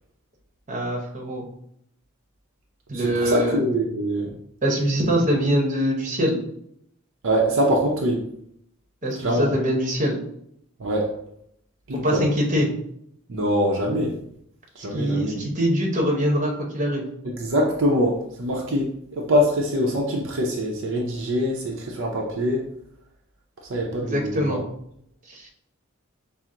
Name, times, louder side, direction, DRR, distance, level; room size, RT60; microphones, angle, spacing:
voice 1, 0.7-1.4 2.9-3.6 4.6-6.4 9.0-10.2 11.9-12.7 14.9-17.1 24.0-24.6 25.3-25.5, equal, 35° right, 0 dB, 0.9 m, -23 dB
voice 2, 3.2-4.3 7.2-8.2 9.2-9.5 10.8-11.1 11.9-12.2 13.3-14.1 14.8-15.3 17.4-18.9 19.1-22.6 23.7-24.6, equal, 60° right, -1 dB, 0.6 m, -23 dB
5.7 x 2.0 x 3.7 m, 0.73 s
head